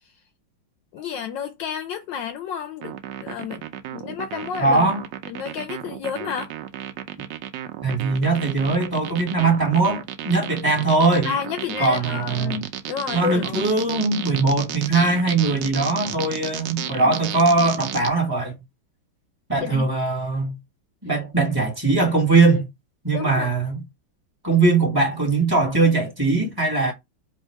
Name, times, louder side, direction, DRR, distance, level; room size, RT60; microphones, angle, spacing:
voice 1, 0.9-2.9 3.2-3.7 3.9-4.9 5.3-6.5 11.2-13.6 16.8-17.2 19.6-19.9 23.1-23.5, left 8 dB, 75° left, 1.2 m, -30 dB
sound 1, 2.8-18.1, right 11 dB, 70° right, 1.1 m, -33 dB
voice 2, 4.6-5.0 7.8-11.3 11.8-12.6 13.1-18.5 19.5-20.5 21.0-22.7 23.0-23.8 24.4-26.9, right 3 dB, 10° right, 1.3 m, -20 dB
3.6 x 2.8 x 4.4 m
omnidirectional pair, 2.2 m